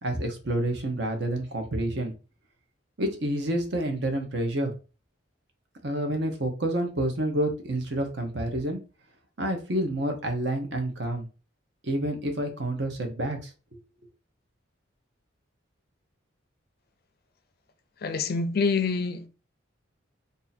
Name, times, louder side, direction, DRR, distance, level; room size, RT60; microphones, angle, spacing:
voice 1, 0.0-2.1 3.0-4.7 5.8-8.8 9.4-11.3 11.8-13.5, right 1 dB, 60° right, 0.8 m, -28 dB
voice 2, 18.0-19.3, left 4 dB, 50° left, 0.4 m, -26 dB
2.7 x 2.5 x 4.0 m
head